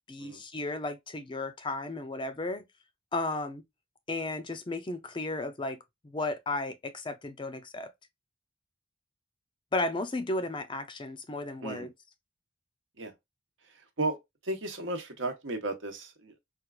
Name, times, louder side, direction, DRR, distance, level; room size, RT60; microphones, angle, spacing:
voice 1, 0.1-2.6 3.1-3.6 4.1-5.8 6.0-7.9 9.7-11.9, left 2 dB, 25° left, 0.4 m, -34 dB
voice 2, 14.4-16.4, right 2 dB, 80° right, 0.9 m, -34 dB
4.3 x 2.3 x 2.3 m
head